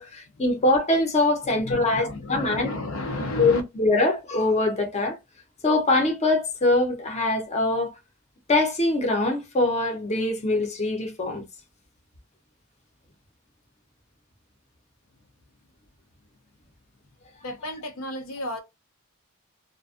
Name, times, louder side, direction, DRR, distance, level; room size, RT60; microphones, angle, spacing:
voice 1, 0.0-2.7 3.4-5.2 5.6-7.9 8.5-11.4, left 2 dB, 30° left, 0.7 m, -23 dB
voice 2, 1.5-3.6 17.4-18.6, left 2 dB, 65° left, 0.5 m, -33 dB
2.4 x 2.2 x 2.4 m
head